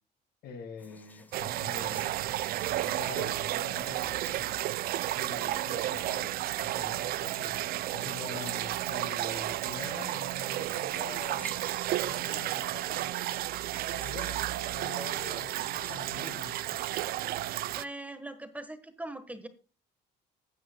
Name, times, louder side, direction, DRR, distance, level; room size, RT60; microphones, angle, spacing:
voice 1, 0.4-2.2 2.9-4.6 5.1-11.5 11.9-13.3 13.9-16.6, left 5 dB, 70° left, 2.1 m, -45 dB
sound 1, 0.8-16.6, left 2 dB, 10° left, 1.2 m, -56 dB
sound 2, 1.3-17.8, right 14 dB, 65° right, 0.4 m, -32 dB
voice 2, 17.7-19.5, right 1 dB, 10° right, 1.4 m, -41 dB
14.5 x 9.5 x 2.3 m
cardioid pair, 110°, 17 cm